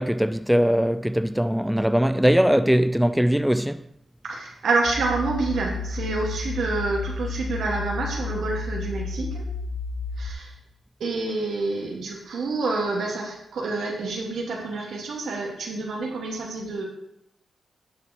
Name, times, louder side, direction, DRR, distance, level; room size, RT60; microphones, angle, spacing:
voice 1, 0.0-3.8, equal, 5° right, 0.4 m, -21 dB
voice 2, 4.2-9.4 10.2-10.5 11.0-16.8, right 3 dB, 80° right, 2.6 m, -28 dB
sound 1, 4.9-10.3, left 4 dB, 80° left, 2.1 m, -31 dB
12.0 x 7.9 x 3.0 m
cardioid pair, 65°, 0 cm